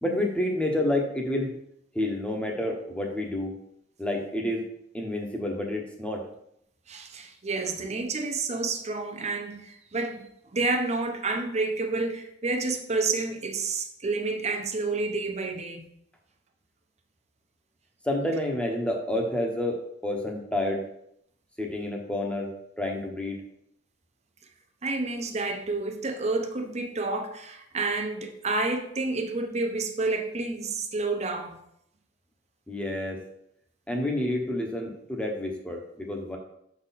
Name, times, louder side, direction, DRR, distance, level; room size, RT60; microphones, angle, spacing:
voice 1, 0.0-1.5 1.9-3.5 4.0-4.7 4.9-6.3 18.0-19.8 20.0-20.8 21.6-22.5 22.8-23.4 32.7-33.2 33.9-36.4, left 1 dB, 5° left, 1 dB, 0.9 m, -29 dB
voice 2, 6.9-10.2 10.5-15.9 24.8-31.6, right 3 dB, 40° right, 5 dB, 0.7 m, -29 dB
6.3 x 4.1 x 4.1 m, 0.74 s
head